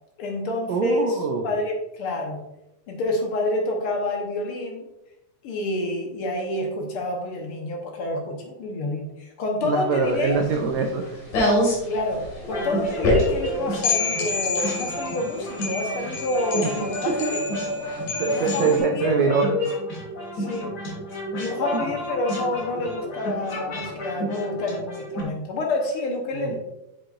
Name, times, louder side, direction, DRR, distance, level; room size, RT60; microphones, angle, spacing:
voice 1, 0.2-1.1 1.4-2.4 2.9-4.8 5.4-10.4 11.9-17.4 18.2-19.1 20.3-20.7 21.3-26.6, left 2 dB, 80° left, 1 dB, 1.2 m, -28 dB
voice 2, 0.7-1.6 9.6-11.2 16.6-17.3 18.2-19.5 21.7-21.8 26.3-26.6, right 4 dB, 85° right, 2 dB, 1.5 m, -24 dB
sound 1, 10.0-18.8, left 2 dB, 65° left, 3.9 m, -27 dB
sound 2, 12.4-25.2, equal, 35° left, 2.1 m, -31 dB
8.8 x 7.3 x 2.5 m, 0.89 s
omnidirectional pair, 4.0 m